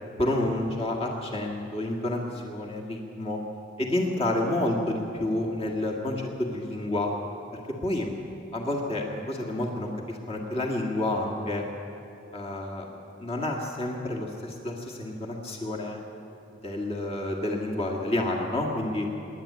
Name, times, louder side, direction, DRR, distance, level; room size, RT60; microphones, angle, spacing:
voice 1, 0.2-3.4 3.8-7.1 7.5-8.1 8.5-11.7 12.3-12.9 13.2-16.0 16.6-19.1, left 1 dB, 30° left, -1 dB, 2.0 m, -29 dB
27.5 x 11.5 x 8.7 m, 2.9 s
head